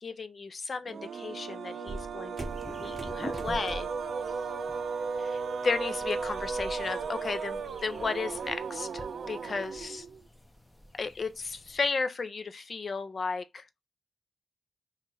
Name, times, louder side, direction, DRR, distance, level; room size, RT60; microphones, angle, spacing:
voice 1, 0.0-3.9 5.3-10.1 11.0-13.6, left 4 dB, 60° left, 0.6 m, -34 dB
sound 1, 0.9-10.2, right 5 dB, 90° right, 0.5 m, -36 dB
sound 2, 1.9-4.1 4.5-4.8 5.1-6.8, right 2 dB, 40° right, 0.6 m, -44 dB
sound 3, 2.4-11.9, equal, 20° left, 0.9 m, -47 dB
2.9 x 2.4 x 4.2 m
cardioid pair, 65°, 0 cm